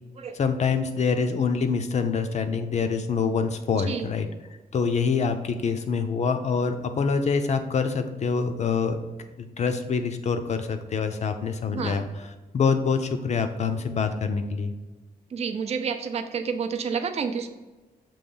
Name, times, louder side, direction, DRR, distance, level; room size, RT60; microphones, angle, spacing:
voice 1, 0.3-4.3 4.7-9.0 9.4-12.0 12.5-14.7, left 5 dB, 50° left, 8 dB, 0.6 m, -25 dB
voice 2, 3.7-4.1 11.7-12.0 15.3-17.5, right 6 dB, 45° right, 6 dB, 0.5 m, -29 dB
6.9 x 3.1 x 5.4 m, 1.2 s
wide cardioid pair, 150°, 15 cm